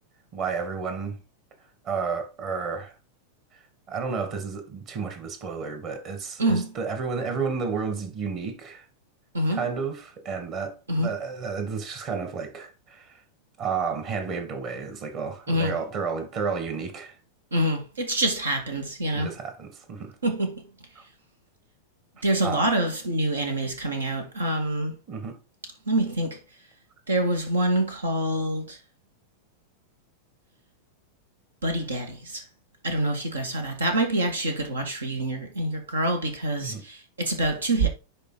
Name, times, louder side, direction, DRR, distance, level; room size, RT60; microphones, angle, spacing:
voice 1, 0.3-1.2 1.8-2.9 3.9-8.8 9.5-13.2 13.6-17.2 19.1-20.2 22.4-22.7 25.1-25.4 36.6-36.8, right 5 dB, 40° right, 2.1 m, -31 dB
voice 2, 6.4-6.7 9.3-9.7 10.9-11.1 15.5-15.8 17.5-19.3 20.2-20.6 22.2-25.0 25.9-26.4 27.1-28.8 31.6-32.4 32.8-37.9, right 1 dB, 75° right, 2.0 m, -26 dB
10.0 x 4.1 x 4.2 m
figure-of-eight pair, 90°, 0 cm